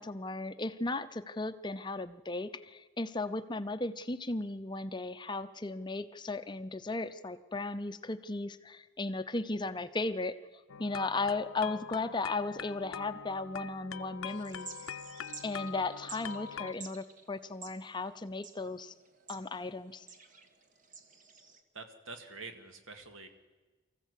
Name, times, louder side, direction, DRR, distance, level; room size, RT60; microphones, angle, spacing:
voice 1, 0.0-10.4 10.8-14.7 15.4-18.9 19.3-20.1, left 3 dB, 20° left, 11 dB, 0.6 m, -36 dB
sound 1, 10.7-16.7, left 7 dB, 80° left, 0.6 m, -43 dB
sound 2, 14.3-21.6, right 5 dB, 40° right, 1.6 m, -51 dB
voice 2, 21.7-23.3, right 3 dB, 75° right, 6 dB, 2.2 m, -46 dB
23.5 x 15.0 x 8.3 m, 1.3 s
head